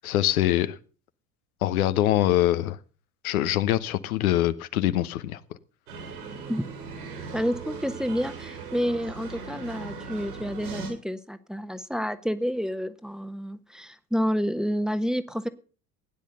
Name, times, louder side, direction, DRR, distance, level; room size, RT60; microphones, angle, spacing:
voice 1, 0.0-0.8 1.6-2.8 3.2-5.4, left 13 dB, 70° left, 11 dB, 1.1 m, -24 dB
sound 1, 5.9-10.9, right 4 dB, 75° right, 6.9 m, -39 dB
voice 2, 7.3-15.5, equal, ahead, 10 dB, 1.3 m, -29 dB
16.5 x 10.5 x 6.8 m, 0.39 s
figure-of-eight pair, 65°, 45 cm